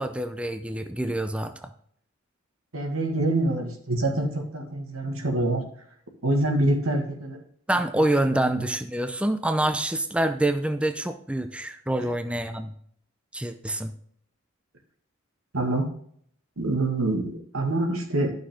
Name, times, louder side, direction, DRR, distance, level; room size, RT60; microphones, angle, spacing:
voice 1, 0.0-1.7 7.7-12.7 13.3-13.9, right 1 dB, 5° right, 8 dB, 0.6 m, -26 dB
voice 2, 2.7-5.6 6.2-7.4 7.9-8.7 12.0-12.1 15.5-15.9 16.6-18.3, right 2 dB, 90° right, 4 dB, 1.9 m, -26 dB
12.0 x 6.5 x 3.7 m, 0.62 s
head